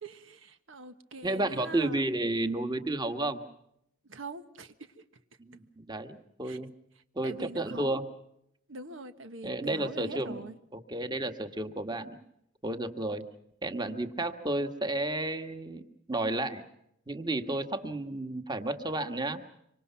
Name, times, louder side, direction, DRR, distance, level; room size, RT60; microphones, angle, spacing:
voice 1, 0.0-2.1 4.0-5.0 6.4-6.6 6.9-8.1 8.7-10.6, right 2 dB, 85° right, 1.5 m, -44 dB
voice 2, 1.2-3.4 5.4-6.7 7.1-8.1 9.4-10.4 10.7-12.2 12.6-13.2 13.6-16.6 17.1-19.4, right 2 dB, 20° right, 1.5 m, -32 dB
26.0 x 25.5 x 5.8 m
head